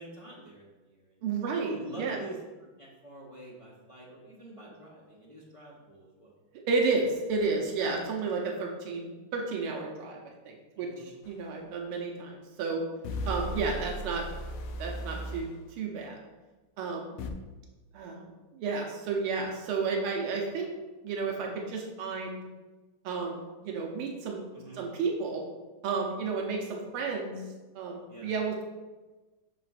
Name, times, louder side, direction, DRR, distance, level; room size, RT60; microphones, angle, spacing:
voice 1, 0.0-1.2 1.7-2.3 2.6-6.3 10.8-11.1 24.5-24.8 28.1-28.3, right 1 dB, 30° left, -6 dB, 0.6 m, -47 dB
voice 2, 1.2-2.2 6.7-12.8 13.3-14.2 14.8-16.2 16.8-17.2 17.9-20.7 21.0-22.4 23.0-24.5 24.8-25.4 25.8-27.4 27.8-28.6, right 4 dB, 85° right, 0 dB, 1.7 m, -32 dB
sound 1, 11.2-11.3 13.0-15.5 17.2-17.3, equal, 80° left, 1.5 m, -36 dB
7.4 x 5.8 x 2.5 m, 1.2 s
omnidirectional pair, 2.4 m